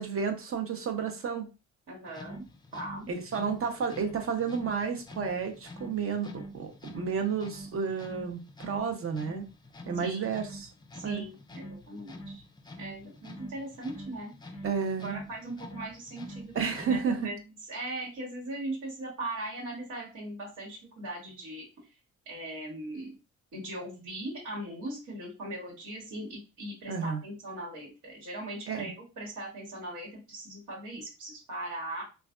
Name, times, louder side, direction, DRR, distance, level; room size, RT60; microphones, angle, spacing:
voice 1, 0.0-1.5 3.1-9.5 9.9-10.7 11.0-11.2 14.6-15.2 16.5-17.2 26.9-27.2 28.7-28.9, right 6 dB, 45° right, 5 dB, 0.8 m, -31 dB
voice 2, 1.9-2.4 2.7-3.1 10.0-10.4 10.9-12.4 12.8-14.3 15.0-21.9 22.2-23.1 23.5-32.0, right 1 dB, 85° right, -5 dB, 1.3 m, -39 dB
sound 1, 2.1-17.3, equal, 15° left, 0.4 m, -46 dB
3.2 x 2.3 x 2.4 m, 0.31 s
cardioid pair, 90°, 30 cm